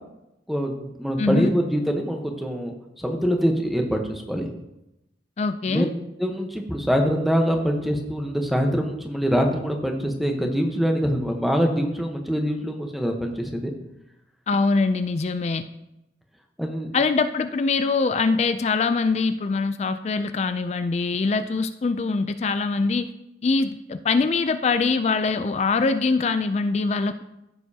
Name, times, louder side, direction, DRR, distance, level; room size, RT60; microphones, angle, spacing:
voice 1, 0.5-4.5 5.7-5.9 6.2-13.7 16.6-16.9, equal, ahead, 3 dB, 1.0 m, -24 dB
voice 2, 1.2-1.5 5.4-5.9 14.5-15.6 16.9-23.1 23.4-27.2, left 4 dB, 35° left, 10 dB, 0.3 m, -23 dB
14.5 x 6.8 x 2.8 m, 0.89 s
head